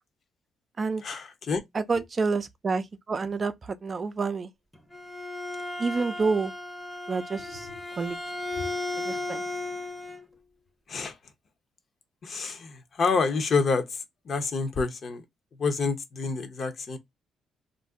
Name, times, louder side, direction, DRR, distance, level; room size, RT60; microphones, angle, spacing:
voice 1, 1.0-1.6 7.7-7.8 8.6-8.7 10.9-11.2 12.2-15.2 15.6-17.0, left 4 dB, 50° left, 0.7 m, -28 dB
voice 2, 1.7-4.5 5.8-6.5 7.1-7.7 8.0-8.2 9.0-9.4, right 4 dB, 35° right, 0.4 m, -28 dB
Bowed string instrument, 4.7-10.3, left 2 dB, 5° left, 0.7 m, -35 dB
2.5 x 2.1 x 3.5 m
cardioid pair, 90°, 0 cm